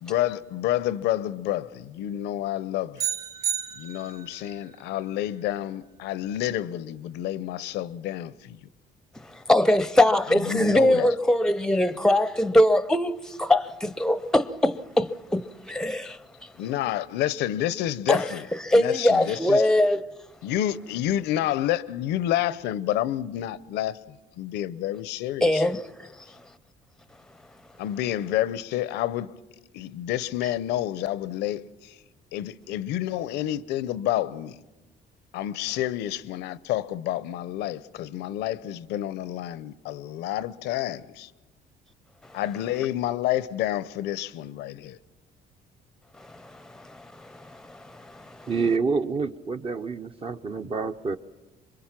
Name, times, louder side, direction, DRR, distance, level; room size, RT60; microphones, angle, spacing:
voice 1, 0.0-3.0 3.8-8.6 10.3-11.1 16.6-18.5 18.7-19.6 20.4-25.6 27.8-29.3 29.7-31.9 32.3-34.6 35.3-41.3 42.3-45.0, left 13 dB, 85° left, 0.7 m, -29 dB
sound 1, 3.0-4.4, right 9 dB, 50° right, 3.4 m, -31 dB
voice 2, 9.5-16.2 18.1-20.0 25.4-25.8 46.7-46.8 47.3-48.5, left 1 dB, 5° left, 0.6 m, -22 dB
voice 3, 48.5-51.2, right 4 dB, 35° right, 0.7 m, -27 dB
26.0 x 23.0 x 5.9 m
cardioid pair, 110°, 17 cm